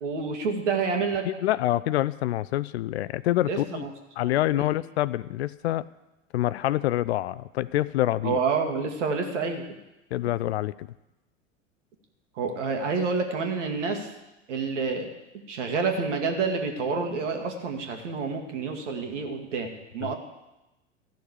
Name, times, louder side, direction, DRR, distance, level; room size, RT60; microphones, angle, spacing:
voice 1, 0.0-1.3 3.5-3.9 4.5-4.7 8.2-9.6 12.4-14.1 14.5-15.1 15.5-20.2, right 4 dB, 65° right, 4 dB, 2.1 m, -28 dB
voice 2, 1.2-3.9 4.2-5.9 6.3-8.4 10.1-10.9 20.0-20.1, left 14 dB, 55° left, 18 dB, 0.5 m, -26 dB
13.5 x 6.7 x 8.1 m, 0.97 s
figure-of-eight pair, 80°, 39 cm